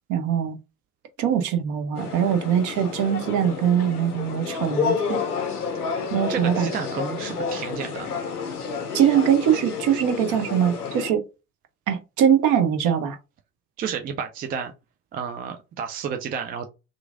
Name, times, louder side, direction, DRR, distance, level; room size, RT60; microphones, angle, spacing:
voice 1, 0.1-0.6 1.2-5.2 6.1-6.7 8.9-11.2 11.9-13.2, right 9 dB, 45° right, 0.8 m, -22 dB
sound 1, 1.9-11.1, left 5 dB, 80° left, 0.7 m, -30 dB
voice 2, 6.0-8.3 13.8-14.7 15.1-16.7, right 7 dB, 20° right, 0.4 m, -31 dB
3.0 x 2.5 x 3.6 m
figure-of-eight pair, 65°, 44 cm